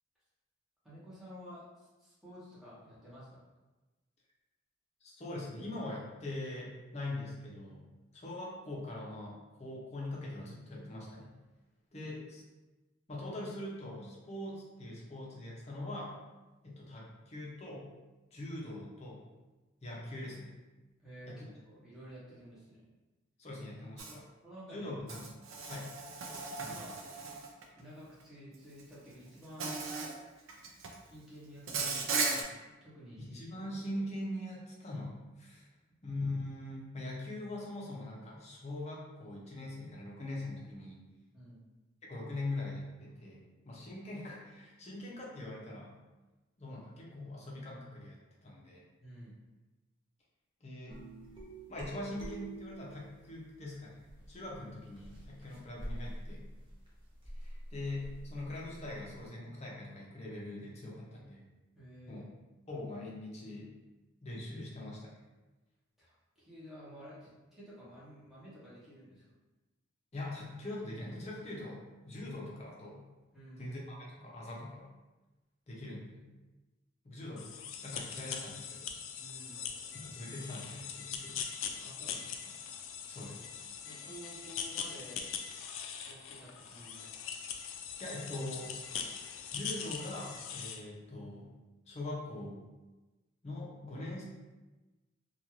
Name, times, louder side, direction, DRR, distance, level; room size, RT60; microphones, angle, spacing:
voice 1, 0.8-3.4 12.0-12.1 21.0-22.9 24.4-24.9 26.3-26.9 27.8-29.7 30.4-30.5 31.0-31.9 32.3-33.7 41.3-41.6 49.0-49.3 61.7-62.3 66.0-69.2 73.3-73.7 79.2-79.6 81.8-82.6 83.8-85.2 86.0-87.1, equal, ahead, -10 dB, 0.9 m, -52 dB
voice 2, 5.0-11.3 11.9-12.4 13.1-16.1 16.6-17.9 18.3-19.2 19.8-20.6 21.3-21.5 23.4-24.3 24.7-25.4 25.7-25.9 26.6-26.9 33.2-35.7 36.0-41.0 42.0-46.0 46.6-48.8 50.6-51.0 51.7-56.5 57.4-61.4 62.1-62.2 62.7-63.7 64.2-65.2 70.1-73.1 73.6-74.9 75.7-76.2 77.0-77.5 77.8-78.9 80.0-81.3 83.1-83.4 88.0-88.7 89.5-91.5 91.9-92.6 93.4-94.2, left 1 dB, 35° left, -4 dB, 0.6 m, -42 dB
Insect, 24.0-24.1 25.1-27.6 28.8-28.9 29.6-30.2 30.5-31.0 31.7-32.4, right 4 dB, 80° right, 0.4 m, -36 dB
sound 1, 50.9-53.3 54.0-59.2, right 1 dB, 25° right, 0.5 m, -46 dB
sound 2, 77.4-90.8, left 7 dB, 80° left, 0.3 m, -42 dB
2.5 x 2.3 x 3.0 m, 1.1 s
head